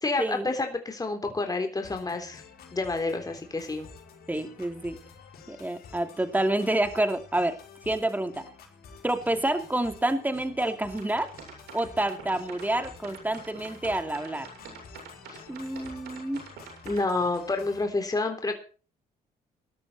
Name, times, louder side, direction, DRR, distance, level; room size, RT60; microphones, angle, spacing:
voice 1, 0.0-2.4 2.7-3.9 15.3-15.4 16.9-18.6, left 3 dB, 20° left, 5 dB, 3.5 m, -29 dB
sound 1, 1.8-17.8, left 5 dB, 70° left, 6.2 m, -50 dB
voice 2, 4.3-5.0 5.5-7.6 7.9-8.4 9.0-11.3 11.7-14.5 15.5-16.4, right 1 dB, 10° right, 8 dB, 2.8 m, -28 dB
sound 2, 10.9-17.0, right 5 dB, 85° right, 7.4 m, -45 dB
19.0 x 12.5 x 4.3 m, 0.38 s
cardioid pair, 75°, 16 cm